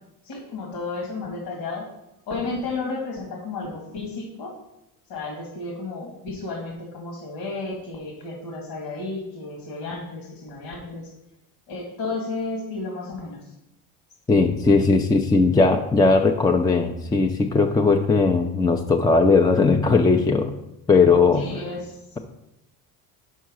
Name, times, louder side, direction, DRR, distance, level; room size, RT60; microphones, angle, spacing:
voice 1, 0.2-1.8 2.3-4.5 5.1-11.1 11.7-13.5 21.3-22.0, left 3 dB, 85° left, 0 dB, 1.9 m, -32 dB
voice 2, 14.3-20.5 20.9-21.4, left 4 dB, 10° left, 3 dB, 0.4 m, -18 dB
5.5 x 4.5 x 6.2 m, 0.86 s
supercardioid pair, 95°, 41 cm